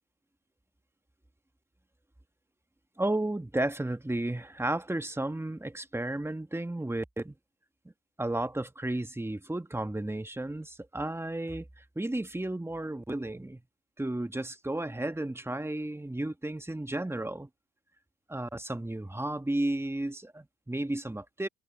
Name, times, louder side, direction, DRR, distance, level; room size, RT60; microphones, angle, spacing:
voice 1, 3.0-7.3 8.2-13.6 14.0-17.5 18.3-21.5, right 1 dB, 5° right, 1.2 m, -33 dB
cardioid pair, 75°, 38 cm